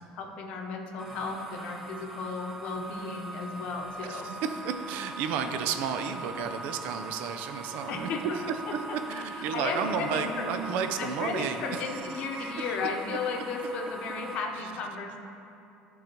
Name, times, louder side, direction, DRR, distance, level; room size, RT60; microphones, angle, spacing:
voice 1, 0.1-4.3 7.9-8.4 8.7-10.7 11.0-15.2, left 4 dB, 50° left, 2 dB, 0.8 m, -35 dB
sound 1, 1.0-14.3, right 2 dB, 5° right, 0.8 m, -42 dB
voice 2, 4.0-8.1 8.5-8.6 8.9-11.8 12.1-12.8 14.6-14.7, right 6 dB, 65° right, 7 dB, 0.5 m, -32 dB
11.5 x 3.9 x 4.5 m, 2.7 s
cardioid pair, 155°, 3 cm